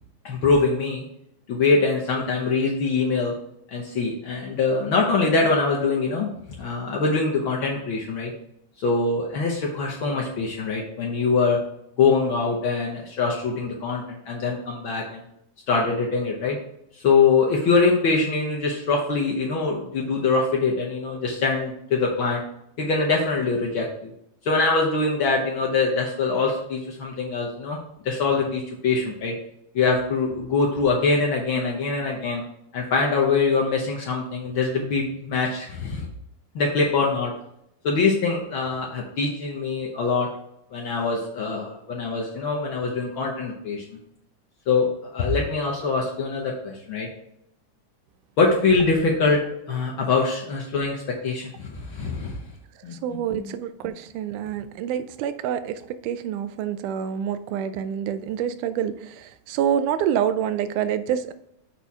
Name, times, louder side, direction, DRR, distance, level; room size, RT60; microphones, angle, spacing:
voice 1, 0.2-1.0 1.5-3.4 3.7-6.3 6.6-8.3 8.8-11.6 12.0-15.2 15.7-16.6 17.0-22.4 22.8-24.1 24.4-27.8 28.0-29.3 29.7-32.4 32.7-36.1 36.5-37.3 37.8-40.3 40.7-44.0 44.7-44.9 45.1-47.1 48.4-49.4 49.7-52.4 52.8-52.9 53.3-53.5, left 4 dB, 70° left, -2 dB, 1.2 m, -23 dB
voice 2, 53.0-61.3, right 9 dB, 85° right, 12 dB, 2.1 m, -27 dB
7.0 x 4.3 x 4.7 m, 0.76 s
omnidirectional pair, 3.5 m